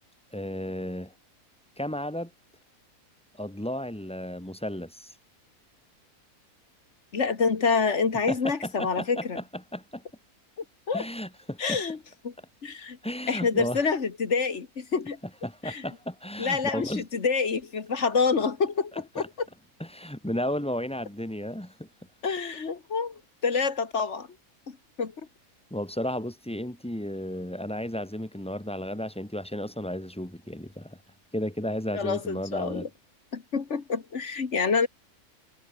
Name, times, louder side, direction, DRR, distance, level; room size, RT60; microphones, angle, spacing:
voice 1, 0.3-1.1 1.8-2.3 3.4-5.1 8.3-10.0 10.9-11.8 13.0-13.9 15.4-17.0 19.2-19.3 19.8-21.9 25.7-31.0 31.3-32.9, left 1 dB, 5° left, 1.7 m, -33 dB
voice 2, 7.1-9.4 10.9-11.0 11.6-12.0 12.2-12.3 12.6-13.0 13.3-15.2 15.6-15.8 16.4-19.3 22.2-24.3 24.7-25.1 31.9-32.9 33.3-34.9, left 5 dB, 50° left, 2.0 m, -27 dB
omnidirectional pair, 1.6 m